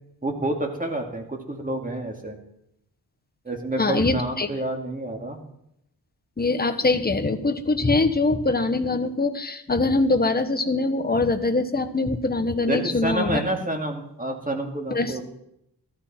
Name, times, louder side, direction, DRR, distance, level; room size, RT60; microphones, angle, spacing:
voice 1, 0.2-2.4 3.4-5.4 12.7-15.2, right 1 dB, 20° right, 2 dB, 2.2 m, -28 dB
voice 2, 3.8-4.5 6.4-13.4 14.9-15.1, left 3 dB, 25° left, 7 dB, 1.1 m, -23 dB
14.0 x 13.5 x 4.3 m, 0.79 s
wide cardioid pair, 95°, 40 cm